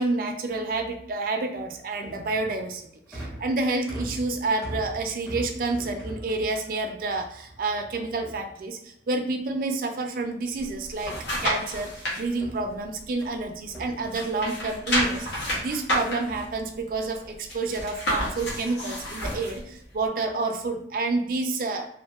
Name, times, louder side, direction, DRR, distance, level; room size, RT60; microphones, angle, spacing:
voice 1, 0.0-2.8 3.1-11.2 11.4-21.9, right 3 dB, 50° right, 4 dB, 0.3 m, -29 dB
sound 1, 1.7-9.0 10.2-10.7 11.0-13.4 13.7-15.0 15.5-17.1 17.5-18.0 18.3-18.7 19.4-19.8 20.3-20.6, right 1 dB, 5° left, 0.5 m, -43 dB
sound 2, 10.6-12.2 12.7-13.8 14.0-19.6 20.1-20.2, equal, 80° left, 1.0 m, -30 dB
2.6 x 2.4 x 2.3 m, 0.74 s
head